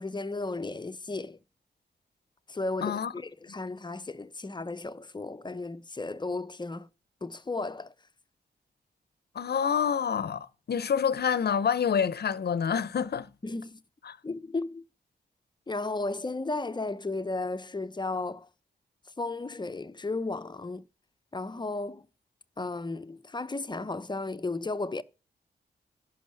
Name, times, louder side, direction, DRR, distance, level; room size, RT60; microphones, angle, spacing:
voice 1, 0.0-1.4 2.5-6.9 7.2-7.9 13.4-13.8 14.2-14.8 15.7-18.5 19.2-20.8 21.3-22.1 22.6-25.0, left 3 dB, 25° left, 0.7 m, -34 dB
voice 2, 2.8-3.1 9.3-13.3 14.1-14.2, left 7 dB, 65° left, 0.8 m, -27 dB
11.5 x 5.5 x 6.5 m
cardioid pair, 75°, 18 cm